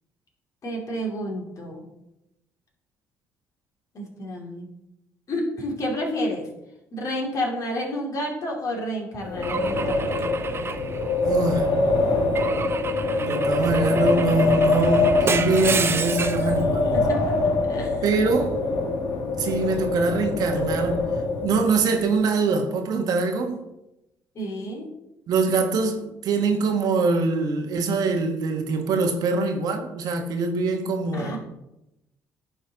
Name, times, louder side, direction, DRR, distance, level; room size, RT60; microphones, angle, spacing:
voice 1, 0.6-1.9 3.9-4.7 5.3-6.5 6.9-10.3 16.4-16.5 16.9-17.3 17.7-18.0 24.3-24.9 31.1-31.4, equal, 50° left, 2.5 m, -30 dB
Wind, 9.2-21.8, left 3 dB, 70° left, 1.5 m, -24 dB
Car / Engine / Glass, 9.4-11.6 12.3-16.5, right 5 dB, 35° right, 0.7 m, -30 dB
voice 2, 11.2-11.7 13.2-17.0 18.0-18.6 19.4-21.0 21.4-23.6 25.3-31.4, right 3 dB, 65° right, 1.2 m, -23 dB
11.0 x 4.1 x 3.9 m
supercardioid pair, 60°, 7 cm